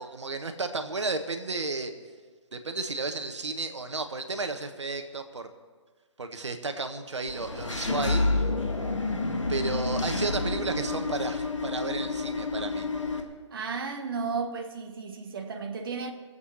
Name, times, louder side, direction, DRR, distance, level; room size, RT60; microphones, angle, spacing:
voice 1, 0.0-1.9 2.5-5.5 6.2-8.4 9.5-12.9, right 3 dB, 70° right, 1.5 m, -33 dB
Engine / Mechanisms, 7.3-13.2, left 3 dB, 75° left, 1.9 m, -29 dB
voice 2, 13.5-16.1, right 5 dB, 45° right, 1.4 m, -33 dB
23.0 x 8.3 x 5.8 m
figure-of-eight pair, 140°, 16 cm